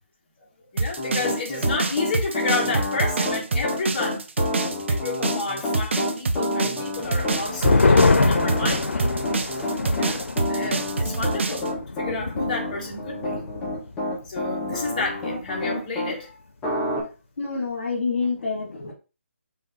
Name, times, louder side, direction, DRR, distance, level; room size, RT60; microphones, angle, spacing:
voice 1, 0.7-4.3 4.9-9.1 9.6-13.4 14.3-16.4, left 3 dB, 35° left, 1.4 m, -30 dB
sound 1, 0.8-11.7, right 3 dB, 65° right, 0.7 m, -26 dB
Piano, 1.0-16.1 16.6-17.0, left 1 dB, 10° left, 0.9 m, -29 dB
sound 2, 7.0-14.0 14.3-14.4 14.8-15.2, left 3 dB, 90° left, 0.5 m, -24 dB
voice 2, 9.2-10.6 17.4-18.9, left 4 dB, 60° left, 2.1 m, -30 dB
5.3 x 2.6 x 3.8 m
hypercardioid pair, 165°, 7 cm